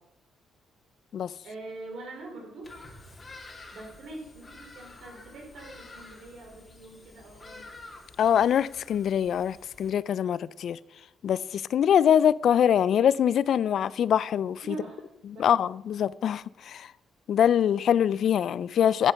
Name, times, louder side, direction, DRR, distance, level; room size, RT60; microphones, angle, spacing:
voice 1, 1.4-2.7 3.7-7.7 14.6-15.1 15.3-15.5, right 2 dB, 70° right, 4.8 m, -43 dB
Bird vocalization bird call bird song, 2.6-9.9, left 2 dB, 30° left, 2.2 m, -49 dB
voice 2, 8.2-10.8 11.2-14.8 15.4-16.9 17.3-19.1, left 9 dB, 65° left, 0.3 m, -24 dB
10.5 x 8.2 x 5.7 m
cardioid pair, 90°, 0 cm